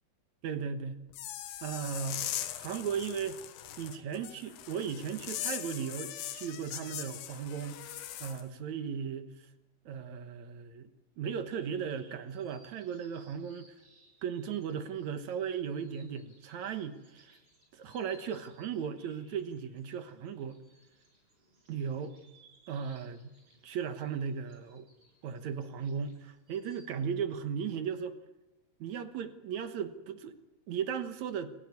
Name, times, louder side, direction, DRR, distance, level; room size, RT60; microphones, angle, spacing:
voice 1, 0.4-1.0 1.6-2.3 2.5-3.4 3.8-7.8 8.2-9.5 9.9-10.9 11.2-13.7 14.2-17.4 17.7-20.6 21.7-22.1 22.7-23.4 23.6-24.9 25.2-28.2 28.8-30.3 30.7-31.6, right 7 dB, 60° right, 9 dB, 2.0 m, -36 dB
sound 1, 1.1-8.4, left 12 dB, 85° left, 3.4 m, -40 dB
sound 2, 11.2-26.9, right 1 dB, 30° right, 6.6 m, -65 dB
27.5 x 17.0 x 9.6 m, 1.1 s
omnidirectional pair, 4.6 m